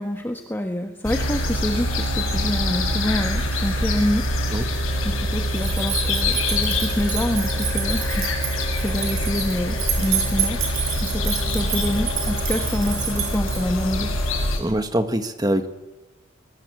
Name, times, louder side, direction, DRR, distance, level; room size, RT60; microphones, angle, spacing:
voice 1, 0.0-4.6 5.0-8.3 8.8-10.7 11.0-14.1, left 1 dB, 10° left, 4 dB, 1.3 m, -27 dB
sound 1, 1.0-14.6, left 1 dB, 90° left, 6.8 m, -24 dB
sound 2, 5.5-13.9, right 10 dB, 80° right, 6.8 m, -29 dB
voice 2, 14.6-15.7, right 1 dB, 20° right, 8 dB, 1.6 m, -23 dB
24.5 x 23.0 x 8.1 m, 1.1 s
head